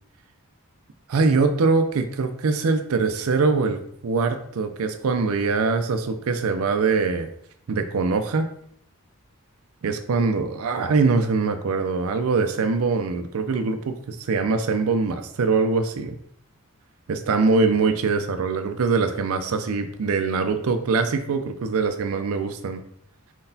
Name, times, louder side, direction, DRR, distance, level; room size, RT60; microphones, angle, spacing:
voice 1, 1.1-7.3 7.7-8.5 9.8-16.2 17.1-22.8, right 4 dB, 75° right, 7 dB, 0.4 m, -23 dB
4.6 x 3.9 x 2.7 m, 0.67 s
head